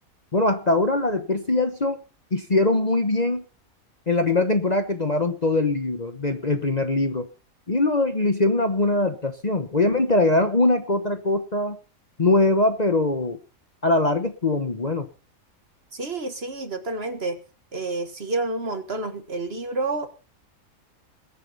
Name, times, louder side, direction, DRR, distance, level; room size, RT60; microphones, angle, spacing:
voice 1, 0.3-2.0 2.3-3.4 4.1-7.3 7.7-11.8 12.2-13.4 13.8-15.1, left 2 dB, 30° left, 8 dB, 1.1 m, -22 dB
voice 2, 15.9-17.4 17.7-20.1, right 2 dB, 45° right, 8 dB, 1.8 m, -29 dB
21.0 x 8.5 x 5.6 m, 0.37 s
omnidirectional pair, 1.5 m